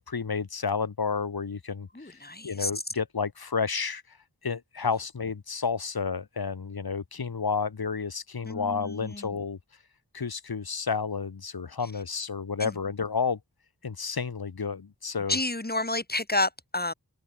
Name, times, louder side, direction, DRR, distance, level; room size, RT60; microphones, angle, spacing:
voice 1, 0.0-2.2 2.4-4.2 4.4-9.6 10.1-13.4 13.8-15.4, left 5 dB, 65° left, 1.2 m, -31 dB
voice 2, 1.9-2.7 8.4-9.3 12.6-12.7 15.3-16.9, left 2 dB, 25° left, 2.2 m, -30 dB
wide cardioid pair, 45°, 39 cm